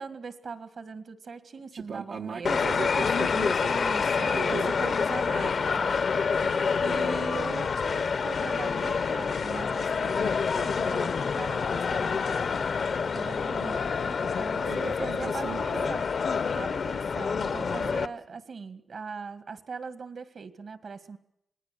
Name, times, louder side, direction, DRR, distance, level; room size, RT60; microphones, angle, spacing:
voice 1, 0.0-2.7 3.7-6.2 6.8-12.5 13.1-16.0 16.5-21.2, right 5 dB, 65° right, 11 dB, 2.0 m, -40 dB
voice 2, 1.7-5.0 6.2-6.8 14.6-15.9 17.5-18.0, right 5 dB, 80° right, 1 dB, 1.3 m, -38 dB
sound 1, 2.5-18.1, left 5 dB, 65° left, 0.9 m, -27 dB
26.5 x 20.0 x 6.8 m, 0.76 s
wide cardioid pair, 115°, 0 cm